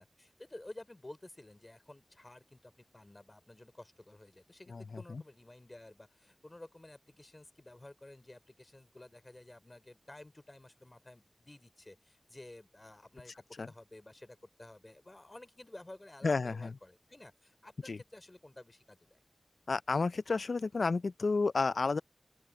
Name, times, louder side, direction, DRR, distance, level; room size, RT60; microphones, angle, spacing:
voice 1, 0.0-13.3 13.7-19.2, left 1 dB, 35° left, 3.7 m, -53 dB
voice 2, 16.2-16.7 17.9-18.0 19.7-22.0, left 4 dB, 80° left, 0.4 m, -31 dB
open air
cardioid pair, 40°, 0 cm